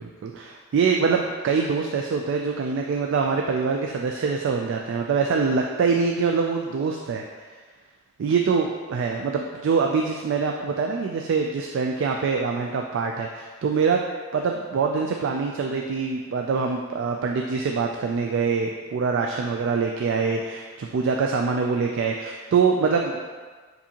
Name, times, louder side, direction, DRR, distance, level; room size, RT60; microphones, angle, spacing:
voice 1, 0.0-7.2 8.2-14.0 14.3-23.2, right 5 dB, 60° right, 1 dB, 0.3 m, -24 dB
6.9 x 2.7 x 2.8 m, 1.5 s
head